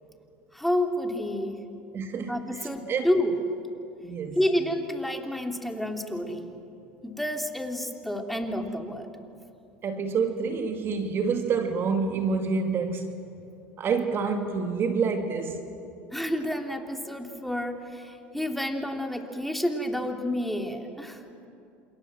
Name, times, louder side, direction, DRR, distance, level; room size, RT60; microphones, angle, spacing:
voice 1, 0.5-1.6 2.3-3.4 4.3-6.4 7.0-9.1 16.1-21.2, left 1 dB, ahead, 3 dB, 3.3 m, -29 dB
voice 2, 1.9-3.1 4.0-4.4 9.8-13.1 13.8-15.6, right 5 dB, 45° right, 6 dB, 2.3 m, -28 dB
28.0 x 27.5 x 7.7 m, 2.7 s
supercardioid pair, 90°, 6 cm